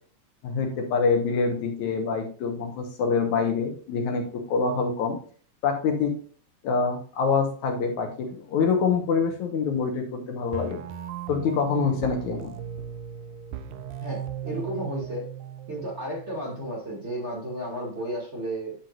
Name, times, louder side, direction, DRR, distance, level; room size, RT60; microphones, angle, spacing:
voice 1, 0.4-5.2 5.6-6.1 6.6-10.8 11.3-12.5, left 5 dB, 70° left, 3 dB, 2.6 m, -25 dB
sound 1, 10.5-16.5, right 9 dB, 80° right, 2.2 m, -37 dB
voice 2, 14.0-15.2 15.7-18.7, right 1 dB, 25° right, -3 dB, 2.3 m, -33 dB
9.4 x 7.3 x 2.5 m, 0.42 s
omnidirectional pair, 3.6 m